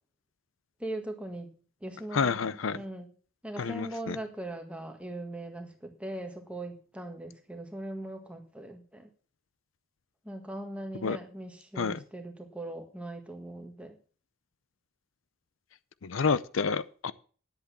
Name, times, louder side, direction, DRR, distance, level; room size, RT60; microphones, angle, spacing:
voice 1, 0.8-1.5 1.8-3.1 3.4-9.1 10.2-14.0, right 1 dB, 5° right, 1.6 m, -40 dB
voice 2, 2.1-2.8 3.6-4.2 11.0-11.2 11.8-12.0 16.0-17.1, left 5 dB, 80° left, 0.6 m, -29 dB
10.5 x 8.2 x 7.1 m
head